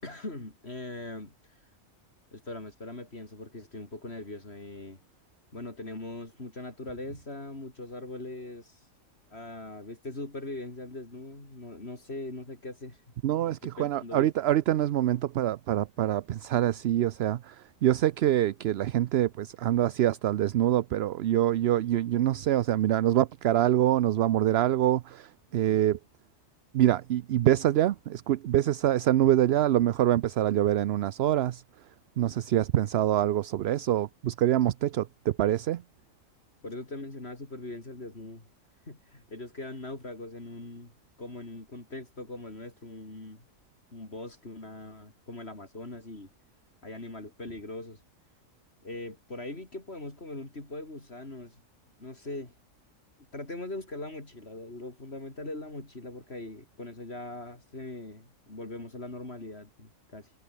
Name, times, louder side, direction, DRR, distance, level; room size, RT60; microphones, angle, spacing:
voice 1, 0.0-1.3 2.3-5.0 5.5-8.9 9.3-14.3 36.6-38.5 38.9-40.9 41.2-43.4 43.9-46.3 46.8-48.0 48.8-51.6 52.0-52.5 53.3-60.3, left 2 dB, 50° left, 4.5 m, -41 dB
voice 2, 13.2-17.6 17.8-26.0 26.7-31.6 32.2-35.8, right 12 dB, 60° right, 0.7 m, -25 dB
omnidirectional pair, 1.4 m